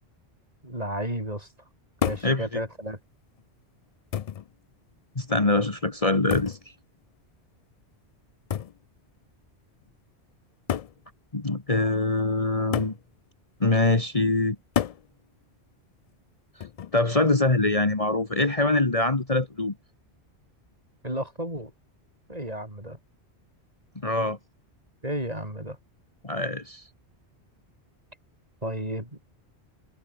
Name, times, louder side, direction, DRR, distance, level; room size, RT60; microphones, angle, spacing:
voice 1, 0.6-1.5 2.0-3.0 21.0-21.7 22.3-23.0 25.0-25.8 28.6-29.2, right 1 dB, 35° right, 8.2 m, -32 dB
sound 1, 2.0-2.4 3.4-3.5 4.1-4.5 6.3-6.7 8.5-8.8 9.9-10.0 10.7-11.0 12.7-13.0 14.8-15.1 16.6-17.0, left 9 dB, 70° left, 0.3 m, -29 dB
voice 2, 5.1-6.6 11.3-12.9 13.6-14.6 16.9-19.7 24.0-24.4 26.2-26.8, left 2 dB, 30° left, 1.8 m, -23 dB
omnidirectional pair, 1.2 m